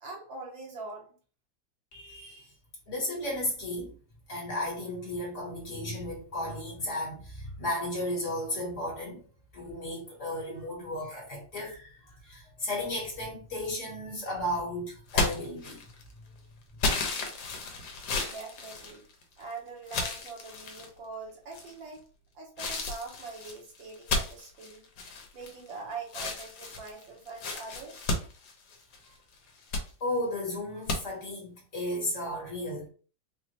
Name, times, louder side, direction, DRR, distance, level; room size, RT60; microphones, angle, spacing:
voice 1, 0.0-1.1 18.3-19.0 19.4-22.0 22.4-24.8 25.3-28.1, right 4 dB, 80° right, 2.0 m, -43 dB
voice 2, 1.9-2.5 2.9-3.9 4.3-9.2 9.5-15.8 30.0-32.9, left 1 dB, 45° left, 1.6 m, -34 dB
sound 1, 15.1-16.1 16.8-19.4 19.9-20.9 21.5-22.0 22.6-25.8 26.1-29.1 29.5-29.9 30.9-31.0, left 3 dB, 80° left, 1.5 m, -33 dB
4.7 x 2.5 x 3.0 m
omnidirectional pair, 2.0 m